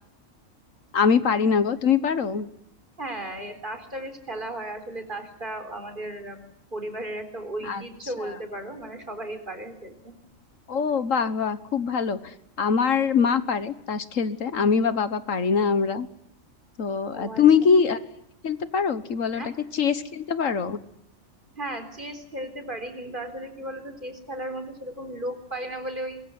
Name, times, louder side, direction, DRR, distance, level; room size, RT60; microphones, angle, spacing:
voice 1, 0.9-2.5 7.6-7.8 8.2-8.3 10.7-16.1 16.8-18.0 18.4-19.4 19.7-20.8, left 6 dB, 75° left, 12 dB, 1.6 m, -23 dB
voice 2, 3.0-6.4 6.7-10.1 17.1-17.7 19.3-19.5 21.6-26.2, right 1 dB, 40° right, 7 dB, 4.0 m, -35 dB
24.5 x 22.0 x 9.6 m, 0.73 s
omnidirectional pair, 1.4 m